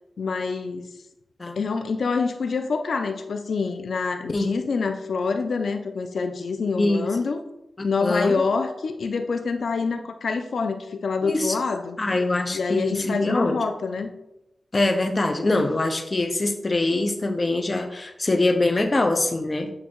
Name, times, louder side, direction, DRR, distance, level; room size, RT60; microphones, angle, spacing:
voice 1, 0.2-0.8 1.6-7.4 7.8-12.0 12.5-14.1, left 4 dB, 80° left, 7 dB, 0.7 m, -26 dB
voice 2, 7.8-8.3 11.2-11.6 12.0-13.6 14.7-19.7, left 2 dB, 40° left, 5 dB, 0.9 m, -23 dB
8.6 x 3.0 x 4.6 m, 0.89 s
cardioid pair, 70°, 0 cm